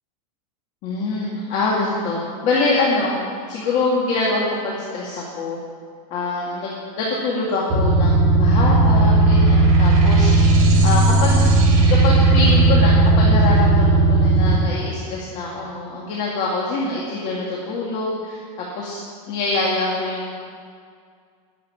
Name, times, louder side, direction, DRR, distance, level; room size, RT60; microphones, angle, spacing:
voice 1, 0.8-3.2 3.5-5.6 6.1-10.5 10.8-11.4 11.9-18.4 18.7-19.0 19.3-20.3, left 3 dB, 35° left, -4 dB, 2.3 m, -24 dB
sound 1, 7.7-14.5, right 2 dB, 45° right, 4.4 m, -15 dB
10.5 x 7.9 x 10.0 m, 2.1 s
supercardioid pair, 155°, 19 cm